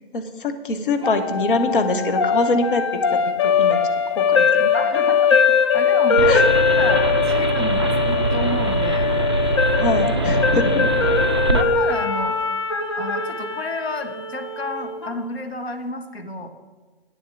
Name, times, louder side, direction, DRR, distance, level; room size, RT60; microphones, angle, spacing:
voice 1, 0.1-2.8 3.1-3.2 3.4-3.8 4.1-4.7 6.3-6.4 9.8-10.9, left 2 dB, 55° left, 7 dB, 1.2 m, -23 dB
sound 1, 1.0-15.1, left 6 dB, 25° left, 0.5 m, -21 dB
voice 2, 4.7-5.3 5.7-6.4 6.7-9.1 10.5-10.7 11.5-12.4 13.0-16.5, left 2 dB, 70° left, 5 dB, 1.3 m, -30 dB
sound 2, 6.2-11.6, right 3 dB, 25° right, 0.4 m, -23 dB
9.2 x 7.4 x 7.1 m, 1.3 s
figure-of-eight pair, 135°, 32 cm